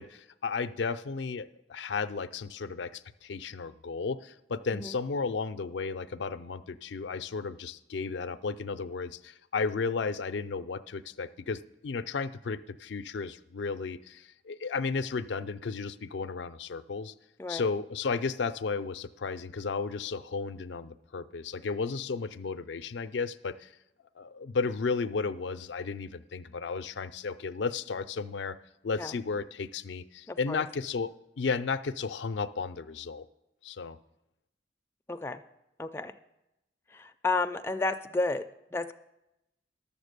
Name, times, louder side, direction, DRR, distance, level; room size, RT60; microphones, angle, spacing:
voice 1, 0.0-17.1 17.5-23.7 24.2-28.6 28.8-33.3 33.6-34.0, left 4 dB, 75° left, 13 dB, 0.5 m, -34 dB
voice 2, 30.3-30.6 35.1-35.4 35.8-36.1 36.9-38.4 38.7-38.9, left 3 dB, 15° left, 6 dB, 0.3 m, -31 dB
11.5 x 7.1 x 6.6 m, 0.90 s
head